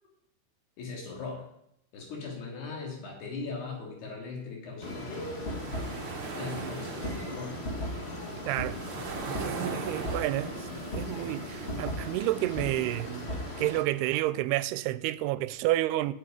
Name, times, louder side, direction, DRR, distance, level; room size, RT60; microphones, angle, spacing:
voice 1, 0.8-1.5 1.9-5.9 6.4-7.6 9.4-9.7 11.1-11.3, left 4 dB, 85° left, 5.0 m, -39 dB
sound 1, 4.8-13.8, equal, 55° left, 0.7 m, -37 dB
sound 2, 5.0-14.3, right 4 dB, 60° right, 1.2 m, -42 dB
voice 2, 8.5-8.8 9.2-10.7 10.9-13.3 13.6-16.1, right 16 dB, 90° right, 2.6 m, -30 dB
8.5 x 8.5 x 9.1 m
omnidirectional pair, 4.5 m